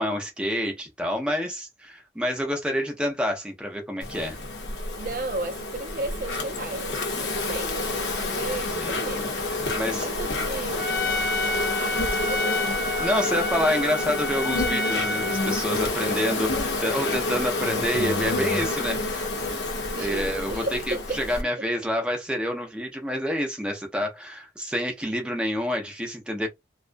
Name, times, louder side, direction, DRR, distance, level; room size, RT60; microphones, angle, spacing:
voice 1, 0.0-4.4 8.7-8.9 9.7-10.1 13.0-19.6 20.0-26.5, equal, 5° right, 0.5 m, -28 dB
Insect, 4.0-21.4, left 2 dB, 85° left, 0.7 m, -29 dB
voice 2, 5.0-9.7 10.0-10.9 11.8-12.8 19.9-21.2 21.6-21.7, right 2 dB, 50° right, 0.5 m, -35 dB
Trumpet, 10.8-15.7, left 2 dB, 55° left, 0.4 m, -29 dB
2.3 x 2.2 x 2.5 m
head